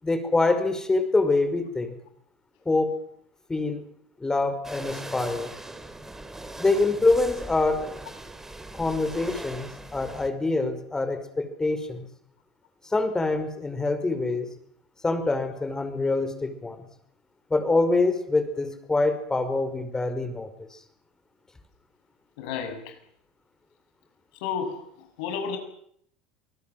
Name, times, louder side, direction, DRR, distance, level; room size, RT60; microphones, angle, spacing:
voice 1, 0.0-2.0 2.7-3.0 3.5-3.8 4.2-5.5 6.6-7.8 8.7-12.1 12.9-14.5 15.0-16.8 17.5-20.7, left 3 dB, 15° left, 10 dB, 5.4 m, -25 dB
sound 1, 4.6-10.3, right 2 dB, 10° right, 3.7 m, -40 dB
voice 2, 22.4-23.0 24.3-25.6, left 6 dB, 75° left, 6 dB, 7.6 m, -32 dB
27.0 x 19.5 x 7.7 m, 0.68 s
hypercardioid pair, 90°, 4 cm